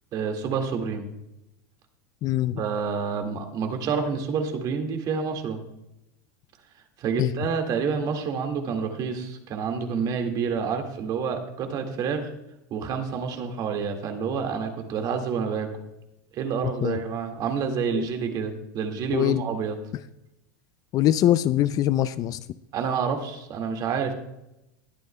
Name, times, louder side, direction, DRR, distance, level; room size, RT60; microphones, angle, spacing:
voice 1, 0.1-1.1 2.6-5.6 7.0-12.3 12.7-15.7 16.3-19.8 22.7-24.1, right 6 dB, 40° right, 5 dB, 1.9 m, -28 dB
voice 2, 2.2-2.6 7.2-7.3 16.8-17.0 19.1-19.4 20.9-22.4, left 13 dB, 40° left, 15 dB, 0.4 m, -22 dB
20.0 x 9.4 x 2.2 m, 0.88 s
supercardioid pair, 120°, 10 cm